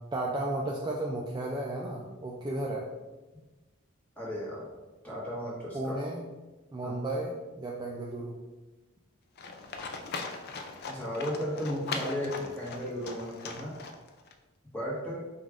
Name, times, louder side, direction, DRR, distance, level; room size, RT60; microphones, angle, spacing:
voice 1, 0.1-2.9 5.7-6.2 6.7-8.4, right 1 dB, 20° right, -2 dB, 0.3 m, -33 dB
voice 2, 4.2-4.7 5.0-6.0 6.8-6.9 10.9-13.7 14.7-15.2, equal, 5° left, -7 dB, 1.4 m, -35 dB
Livestock farm animals working animals, 9.4-14.3, left 4 dB, 50° left, 0.4 m, -39 dB
5.3 x 2.4 x 3.5 m, 1.2 s
head